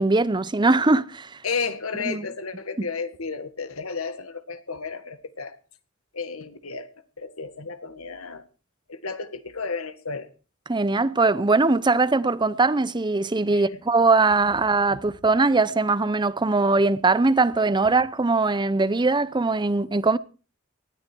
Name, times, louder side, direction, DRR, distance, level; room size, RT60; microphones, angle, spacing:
voice 1, 0.0-1.4 2.0-2.3 10.7-20.2, right 3 dB, 20° right, 0.7 m, -21 dB
voice 2, 1.4-5.6 6.1-6.9 7.2-8.5 8.9-10.3 13.5-13.7, left 4 dB, 85° left, 1.8 m, -32 dB
19.0 x 13.5 x 4.5 m
head